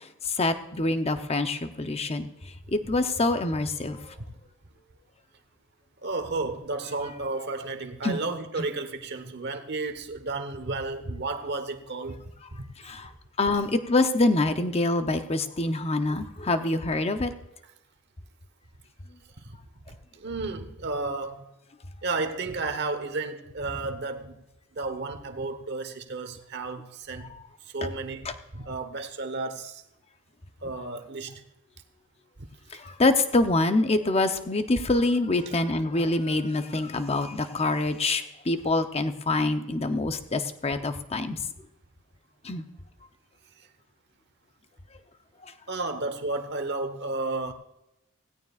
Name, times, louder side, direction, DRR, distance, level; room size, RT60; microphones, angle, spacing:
voice 1, 0.3-2.3 2.7-4.1 8.0-8.2 12.8-13.1 13.4-17.3 32.7-41.4 42.4-42.6, left 2 dB, 30° left, 0.7 m, -25 dB
voice 2, 6.0-12.2 12.5-12.6 17.2-17.3 19.4-19.6 19.9-21.5 22.0-24.4 24.7-27.3 27.7-28.3 28.5-29.8 30.6-31.4 32.4-32.5 45.7-47.5, right 3 dB, 50° right, 1.1 m, -32 dB
17.0 x 16.0 x 2.5 m
head